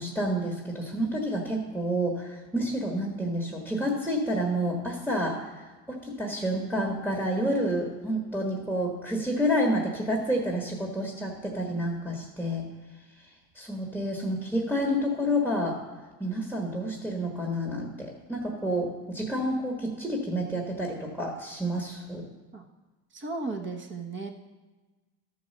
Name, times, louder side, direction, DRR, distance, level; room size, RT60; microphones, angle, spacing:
voice 1, 0.0-12.7 13.2-13.3 13.5-15.9 16.2-22.2, equal, 5° right, -1 dB, 1.5 m, -29 dB
voice 2, 23.1-24.3, right 3 dB, 35° right, 4 dB, 1.4 m, -35 dB
13.0 x 4.8 x 6.6 m, 1.2 s
cardioid pair, 110°, 33 cm